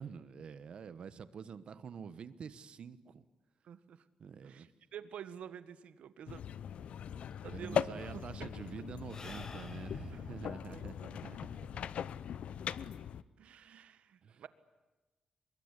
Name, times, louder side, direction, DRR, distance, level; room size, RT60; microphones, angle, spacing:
voice 1, 0.0-3.2 4.2-4.7 7.5-11.7 14.2-14.4, right 6 dB, 55° right, 15 dB, 1.2 m, -47 dB
voice 2, 3.6-4.0 4.4-6.4 7.4-8.5 10.1-11.0 13.4-14.5, right 9 dB, 80° right, 14 dB, 1.6 m, -49 dB
sound 1, 6.3-13.2, left 9 dB, 70° left, 0.8 m, -40 dB
Sigh / Breathing, 7.3-12.0, left 4 dB, 35° left, 2.7 m, -53 dB
24.0 x 22.5 x 9.8 m, 1.2 s
wide cardioid pair, 145°, 2 cm